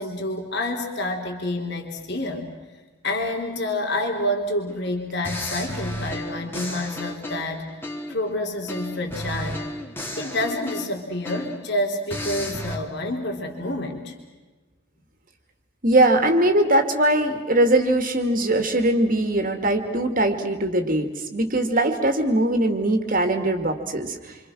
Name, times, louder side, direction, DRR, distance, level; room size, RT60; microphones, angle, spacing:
voice 1, 0.0-2.5 3.0-7.7 8.1-9.6 10.2-14.1, left 1 dB, 55° left, 2 dB, 3.6 m, -28 dB
sound 1, 4.7-4.9 5.2-8.3 8.7-11.7 12.1-12.8, left 1 dB, 10° left, 3.0 m, -33 dB
voice 2, 15.8-24.4, right 1 dB, 40° right, 5 dB, 2.4 m, -21 dB
29.0 x 26.0 x 6.3 m, 1.2 s
head